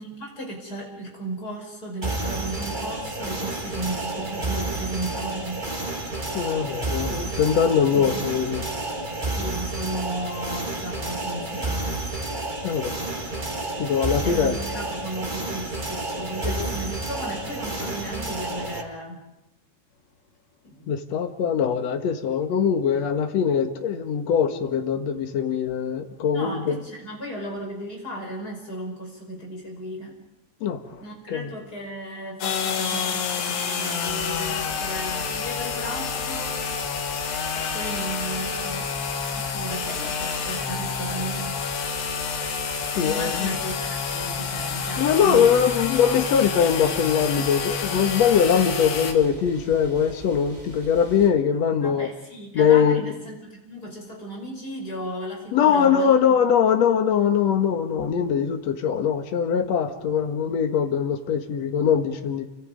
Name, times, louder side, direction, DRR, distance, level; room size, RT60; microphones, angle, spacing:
voice 1, 0.0-5.6 7.9-8.3 9.3-12.0 14.2-19.2 20.6-20.9 26.3-30.2 31.0-36.6 37.5-38.9 39.3-41.5 43.0-45.7 51.8-56.4, right 1 dB, 20° left, 0 dB, 5.4 m, -35 dB
sound 1, 2.0-18.8, right 2 dB, 55° right, 0.5 m, -30 dB
voice 2, 6.3-8.7 12.6-12.9 13.8-14.6 16.4-16.7 20.9-26.8 30.6-31.0 31.3-31.5 43.0-43.5 45.0-52.1 52.5-53.1 55.5-62.4, left 7 dB, 55° left, 6 dB, 2.1 m, -22 dB
sound 2, 32.4-49.1, left 6 dB, 70° left, 4.2 m, -28 dB
sound 3, 34.0-51.3, left 1 dB, 20° right, 4.8 m, -44 dB
29.5 x 25.0 x 5.3 m, 0.92 s
omnidirectional pair, 4.9 m